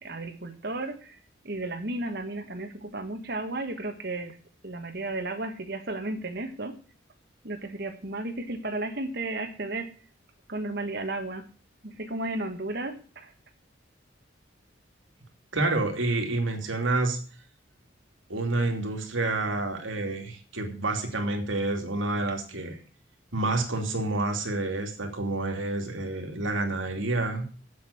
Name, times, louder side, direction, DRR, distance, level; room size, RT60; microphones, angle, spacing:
voice 1, 0.0-1.2 1.4-4.4 4.6-6.7 7.4-9.9 10.5-11.4 11.8-13.3, right 2 dB, 55° right, 6 dB, 1.5 m, -33 dB
voice 2, 15.5-17.2 18.3-22.8 23.3-27.4, right 2 dB, 85° right, 3 dB, 2.8 m, -28 dB
8.4 x 7.9 x 8.5 m, 0.39 s
head